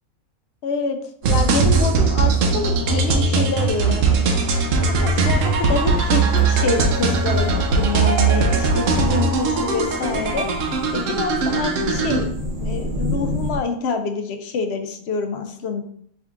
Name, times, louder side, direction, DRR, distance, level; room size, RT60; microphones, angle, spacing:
voice 1, 0.6-1.0 1.3-4.3 4.9-10.5 10.9-12.3 12.6-15.8, left 4 dB, 65° left, 6 dB, 0.7 m, -26 dB
sound 1, 1.2-12.2, right 4 dB, 70° right, 0.9 m, -19 dB
sound 2, 5.0-13.6, equal, 45° right, 0.7 m, -31 dB
4.5 x 3.5 x 2.4 m, 0.62 s
omnidirectional pair, 1.4 m